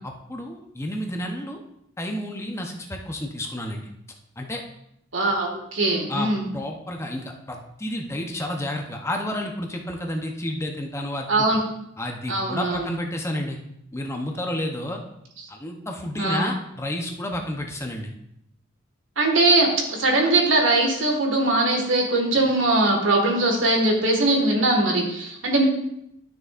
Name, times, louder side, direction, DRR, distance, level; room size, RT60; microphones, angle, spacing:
voice 1, 0.0-1.6 2.0-3.9 4.4-4.6 6.1-11.5 12.0-13.6 13.9-15.0 15.5-18.1, left 1 dB, 15° left, 2 dB, 0.8 m, -30 dB
voice 2, 5.1-6.5 11.3-11.6 12.3-12.9 16.2-16.5 19.2-25.6, right 2 dB, 75° right, 1 dB, 1.7 m, -21 dB
11.5 x 6.5 x 2.5 m, 0.78 s
head